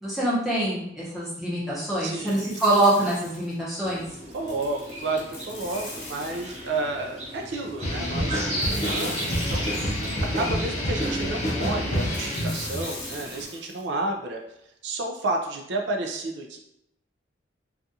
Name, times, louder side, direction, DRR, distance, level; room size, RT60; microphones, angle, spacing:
voice 1, 0.0-4.0, right 1 dB, ahead, -9 dB, 0.8 m, -25 dB
voice 2, 2.0-2.5 4.3-9.9 10.4-14.4 14.8-16.6, right 2 dB, 65° right, 2 dB, 0.3 m, -31 dB
sound 1, 2.3-3.6 4.3-6.9 8.6-10.3 12.1-13.8, left 2 dB, 70° left, 0.8 m, -41 dB
sound 2, 3.8-13.4, right 1 dB, 35° right, 1.1 m, -37 dB
sound 3, 7.8-12.8, equal, 40° left, 0.6 m, -27 dB
2.4 x 2.3 x 2.7 m, 0.78 s
head